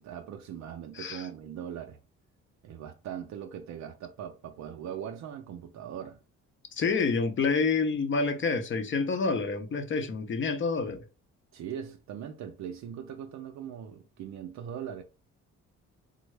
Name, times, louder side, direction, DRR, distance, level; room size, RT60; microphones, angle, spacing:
voice 1, 0.0-2.0 2.6-6.2 11.5-15.0, right 9 dB, 65° right, 0.5 m, -40 dB
voice 2, 0.9-1.3 6.7-11.0, left 4 dB, 40° left, 0.6 m, -28 dB
3.5 x 2.0 x 3.2 m
cardioid pair, 90°, 30 cm